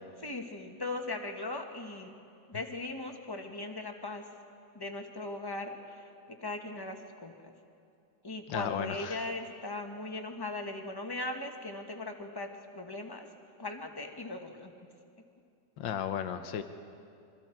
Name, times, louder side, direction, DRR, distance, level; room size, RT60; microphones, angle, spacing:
voice 1, 0.2-2.1 2.5-4.3 4.7-7.5 8.2-13.3 13.6-14.9, left 2 dB, 15° left, 4 dB, 1.2 m, -39 dB
voice 2, 8.5-9.2 15.8-16.6, left 9 dB, 85° left, 8 dB, 1.6 m, -34 dB
26.0 x 23.5 x 4.5 m, 2.5 s
omnidirectional pair, 2.0 m